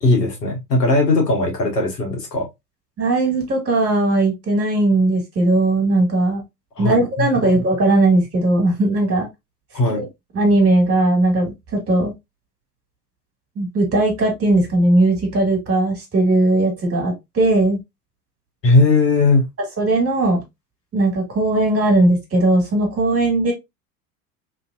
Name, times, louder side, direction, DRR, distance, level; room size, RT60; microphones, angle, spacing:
voice 1, 0.0-2.5 6.8-7.3 9.7-10.0 18.6-19.4, left 2 dB, 90° left, 1.4 m, -18 dB
voice 2, 3.0-6.4 6.8-9.3 9.9-10.0 10.3-12.1 13.5-17.8 19.8-20.4 20.9-23.5, right 2 dB, 30° right, 1.7 m, -18 dB
3.1 x 2.7 x 2.5 m
hypercardioid pair, 85°, 47 cm